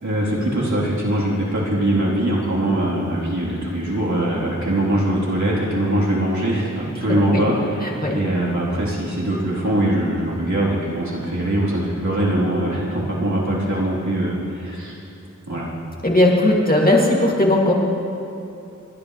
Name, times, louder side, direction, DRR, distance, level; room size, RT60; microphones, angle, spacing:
voice 1, 0.0-15.0 15.5-15.7, right 1 dB, 70° right, -7 dB, 3.7 m, -22 dB
voice 2, 16.0-17.7, left 1 dB, 30° left, -3 dB, 2.6 m, -17 dB
29.0 x 11.5 x 3.3 m, 2.7 s
wide cardioid pair, 45°, 30 cm